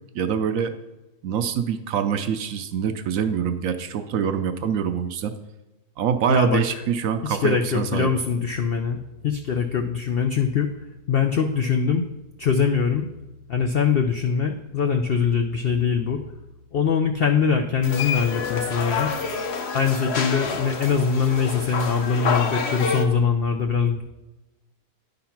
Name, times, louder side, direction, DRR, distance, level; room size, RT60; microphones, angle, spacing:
voice 1, 0.1-0.8 1.2-5.4 6.0-8.1, right 7 dB, 70° right, 9 dB, 0.9 m, -25 dB
voice 2, 6.3-6.6 7.2-9.0 9.2-10.7 11.1-12.1 12.4-13.1 13.5-16.2 16.7-19.1 19.7-24.0, left 6 dB, 85° left, 6 dB, 0.5 m, -22 dB
sound 1, 17.8-23.0, left 5 dB, 50° left, 0.9 m, -28 dB
10.0 x 3.9 x 5.8 m, 1.0 s
omnidirectional pair, 1.7 m